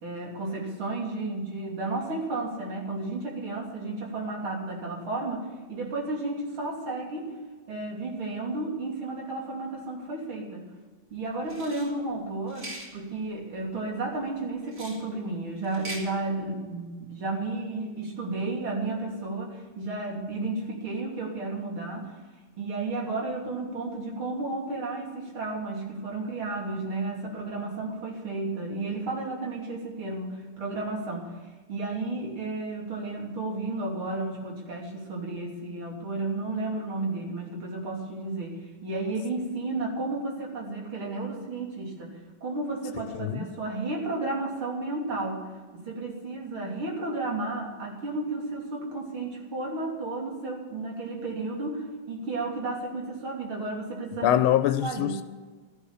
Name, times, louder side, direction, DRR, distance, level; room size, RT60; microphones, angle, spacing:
voice 1, 0.0-7.3 7.7-10.7 11.1-22.2 22.6-31.3 31.7-38.5 38.8-42.1 42.4-45.4 45.7-54.4 54.8-55.2, right 2 dB, 85° right, 3.8 m, -32 dB
sound 1, 11.5-11.9 12.5-12.9 14.7-15.0 15.6-16.0, right 1 dB, 40° right, 3.2 m, -40 dB
voice 2, 43.1-43.5 54.2-55.2, left 12 dB, 85° left, 1.4 m, -24 dB
13.5 x 11.5 x 7.0 m
omnidirectional pair, 2.2 m